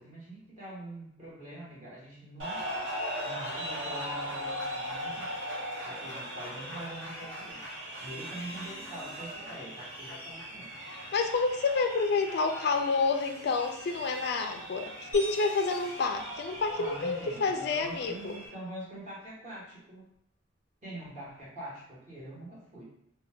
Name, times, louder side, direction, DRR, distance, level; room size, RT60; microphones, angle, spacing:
voice 1, 0.0-2.9 3.2-5.5 5.9-7.6 8.0-10.7 16.7-20.1 20.8-22.8, right 1 dB, 40° right, -8 dB, 1.3 m, -44 dB
sound 1, 2.4-18.5, equal, 60° right, 1.0 m, -39 dB
voice 2, 11.1-18.3, left 4 dB, 55° left, 5 dB, 0.3 m, -29 dB
sound 2, 15.1-17.5, left 1 dB, 15° right, 1.0 m, -47 dB
2.7 x 2.2 x 3.4 m, 0.71 s
head